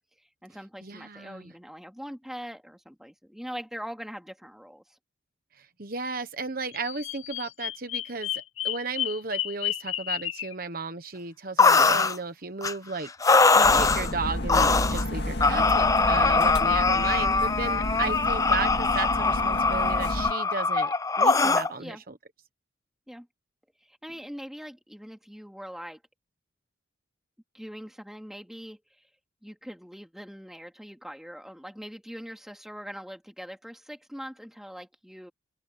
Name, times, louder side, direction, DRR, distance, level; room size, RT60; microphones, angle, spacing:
voice 1, 0.2-5.0 21.8-22.0 23.1-23.3 23.8-26.0 27.5-29.0 29.4-35.3, equal, ahead, 2.6 m, -42 dB
voice 2, 0.8-1.5 5.6-13.1 13.5-22.1, right 4 dB, 45° right, 1.2 m, -34 dB
Bird vocalization bird call bird song, 6.7-10.5, left 13 dB, 90° left, 0.7 m, -32 dB
sound 1, 11.6-12.2 12.6-12.7 13.2-14.1 14.5-15.0 15.4-21.7, left 4 dB, 15° left, 0.6 m, -22 dB
sound 2, 13.6-20.3, left 1 dB, 55° left, 2.2 m, -31 dB
open air
head